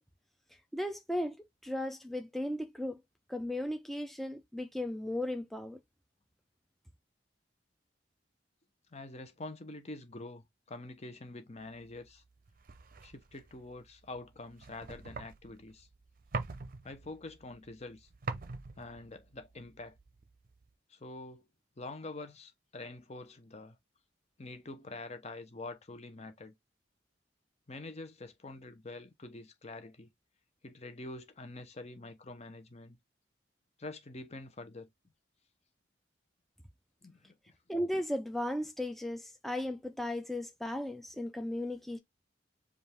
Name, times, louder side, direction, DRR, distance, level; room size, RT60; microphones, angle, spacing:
voice 1, 0.7-1.4 1.6-3.0 3.3-5.8 37.7-42.0, left 1 dB, ahead, 0.4 m, -36 dB
voice 2, 8.9-12.2 13.0-15.9 16.8-18.1 18.8-20.0 20.9-21.4 21.8-23.8 24.4-26.5 27.7-30.1 30.6-33.0 33.8-34.9 37.0-37.5, left 2 dB, 35° left, 0.9 m, -46 dB
sound 1, 11.8-20.7, right 4 dB, 50° right, 0.6 m, -45 dB
5.1 x 2.5 x 3.4 m
head